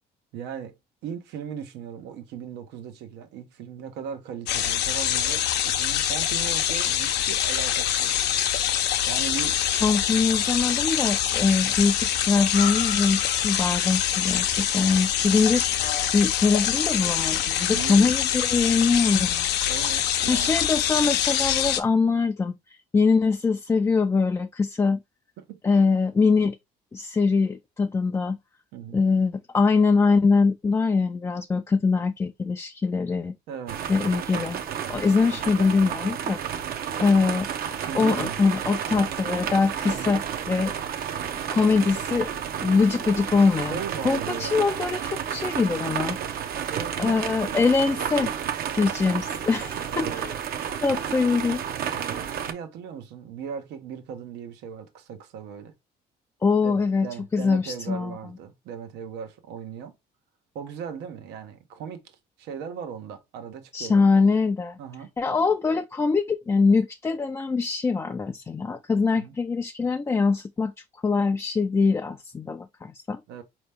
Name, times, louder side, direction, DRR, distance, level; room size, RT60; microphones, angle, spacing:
voice 1, 0.3-0.7 1.0-8.4 9.1-9.6 10.1-10.2 11.6-11.8 17.7-18.1 19.7-20.6 25.4-25.6 28.7-29.0 33.5-33.8 37.8-38.4 39.9-40.2 43.7-44.6 46.6-47.6 49.0-49.2 49.9-50.2 51.9-55.7 56.6-59.9 60.5-64.1 64.8-65.1 69.1-69.3 73.3-73.4, right 7 dB, 90° right, 1.0 m, -38 dB
sound 1, 4.5-21.8, left 10 dB, 80° left, 0.6 m, -25 dB
voice 2, 9.8-19.5 20.3-22.5 22.9-25.0 25.6-26.6 26.9-28.4 28.9-33.4 33.9-34.6 34.9-36.4 37.0-37.5 37.9-40.7 41.5-42.3 42.6-46.2 47.0-48.3 48.7-50.3 50.8-51.6 52.1-52.2 56.4-57.1 57.3-58.2 63.7-64.8 65.2-70.7 71.0-73.2, left 4 dB, 15° left, 0.3 m, -23 dB
sound 2, 33.7-52.5, right 8 dB, 60° right, 0.8 m, -31 dB
4.3 x 3.0 x 3.4 m
cardioid pair, 110°, 17 cm